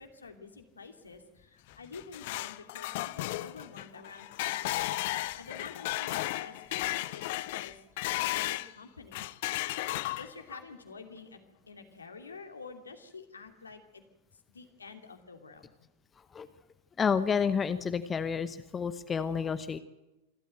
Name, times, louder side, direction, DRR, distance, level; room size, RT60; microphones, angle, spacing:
voice 1, 0.0-7.8 8.2-9.3 10.2-11.4 11.7-14.0 14.5-15.9, left 4 dB, 75° left, 5 dB, 2.7 m, -49 dB
sound 1, 1.7-8.7 9.1-10.5, left 18 dB, 50° left, 0.7 m, -34 dB
voice 2, 17.0-19.8, left 6 dB, 20° left, 13 dB, 0.9 m, -30 dB
26.5 x 12.5 x 9.1 m, 1.0 s
figure-of-eight pair, 90°, 0 cm